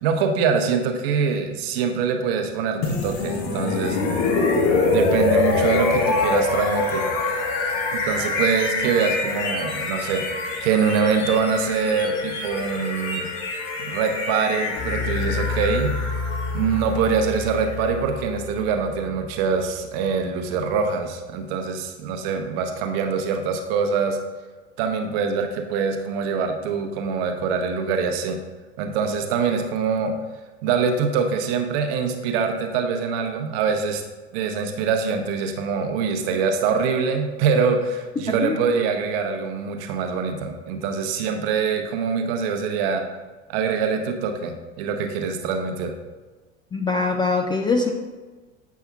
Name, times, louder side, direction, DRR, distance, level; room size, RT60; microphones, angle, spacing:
voice 1, 0.0-4.0 4.8-7.1 7.9-10.2 10.6-13.2 13.8-16.0 16.5-24.2 24.8-28.4 28.8-30.1 30.6-34.0 34.3-43.0 43.5-45.9, right 5 dB, 55° right, 4 dB, 0.9 m, -24 dB
sound 1, 2.8-18.7, left 3 dB, 50° left, 1.2 m, -25 dB
sound 2, 14.8-20.0, left 4 dB, 30° left, 1.7 m, -30 dB
voice 2, 38.3-38.6 46.7-47.9, left 3 dB, 15° left, 3 dB, 0.3 m, -22 dB
8.2 x 5.5 x 2.3 m, 1.3 s
figure-of-eight pair, 75°, 36 cm